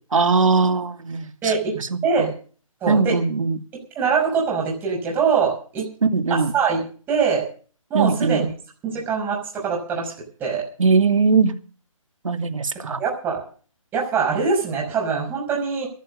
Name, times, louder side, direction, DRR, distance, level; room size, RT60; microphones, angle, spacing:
voice 1, 0.1-2.3 2.9-3.6 6.0-6.5 7.9-8.4 10.8-11.5 12.2-13.0, right 4 dB, 70° right, 8 dB, 2.4 m, -20 dB
voice 2, 1.4-1.8 2.0-2.3 2.8-3.2 4.0-5.9 6.3-6.8 7.1-7.5 7.9-8.5 8.8-10.1 10.4-10.6 13.0-13.5 13.9-15.9, right 5 dB, 10° right, -1 dB, 5.6 m, -23 dB
13.5 x 13.5 x 6.7 m, 0.42 s
figure-of-eight pair, 155°, 18 cm